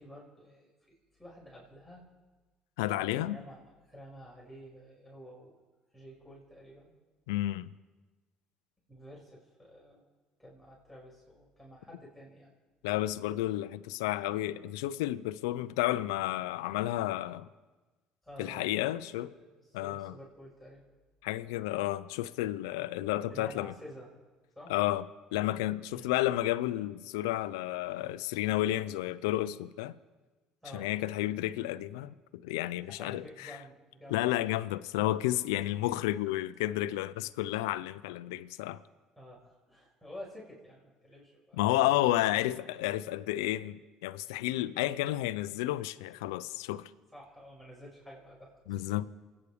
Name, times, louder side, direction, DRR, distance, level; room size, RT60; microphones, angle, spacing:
voice 1, 0.0-2.1 2.9-5.6 5.9-6.9 8.9-10.0 10.4-12.5 18.2-18.7 19.2-20.8 23.3-24.1 24.5-24.7 25.9-26.1 30.6-30.9 32.9-34.4 39.2-41.8 42.3-42.6 47.1-48.9, equal, ahead, 5.9 m, -50 dB
voice 2, 2.8-3.4 7.3-7.7 12.8-17.5 18.4-19.3 19.7-20.1 21.2-23.7 24.7-25.0 25.3-29.9 30.7-32.1 32.4-33.6 34.1-38.8 41.6-46.9 48.7-49.1, left 15 dB, 85° left, 0.6 m, -31 dB
29.0 x 9.7 x 5.0 m
supercardioid pair, 75°, 2 cm